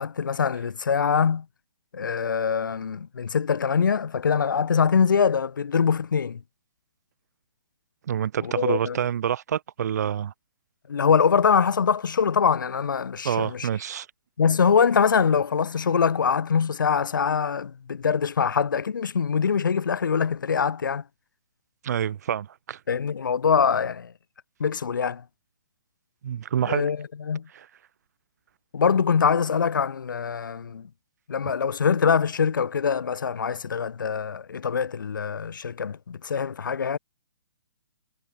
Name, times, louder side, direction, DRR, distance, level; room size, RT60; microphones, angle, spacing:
voice 1, 0.0-1.5 1.9-6.4 8.4-9.0 10.9-13.7 14.4-21.0 22.9-24.1 24.6-25.2 26.6-27.5 28.7-30.9 31.3-37.0, left 6 dB, 70° left, 0.6 m, -23 dB
voice 2, 8.1-10.3 13.2-14.1 21.8-22.8 26.2-26.9 27.5-27.7, right 9 dB, 55° right, 0.7 m, -27 dB
figure-of-eight pair, 125°, 11 cm